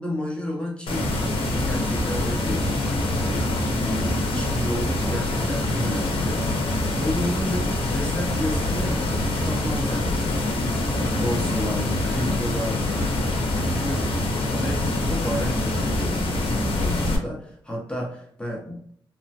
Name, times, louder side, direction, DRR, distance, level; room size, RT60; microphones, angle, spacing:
voice 1, 0.0-3.5 3.8-10.5 11.1-12.8 13.3-14.1 14.5-18.9, left 1 dB, 10° left, -2 dB, 0.7 m, -32 dB
sound 1, 0.9-17.2, left 1 dB, 65° left, 0.7 m, -25 dB
3.2 x 2.1 x 2.7 m, 0.64 s
wide cardioid pair, 110°, 9 cm